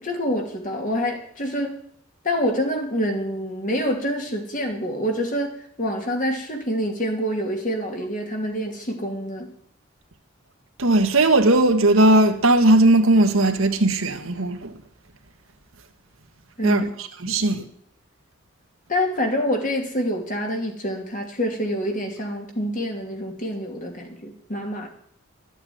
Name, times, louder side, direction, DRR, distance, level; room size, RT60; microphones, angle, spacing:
voice 1, 0.0-1.8 2.2-9.5 16.6-16.8 17.2-17.4 18.9-24.9, equal, 40° left, 2.7 m, -26 dB
voice 2, 10.8-14.7 16.6-17.6, right 2 dB, 80° right, 1.6 m, -18 dB
13.0 x 8.4 x 9.4 m
head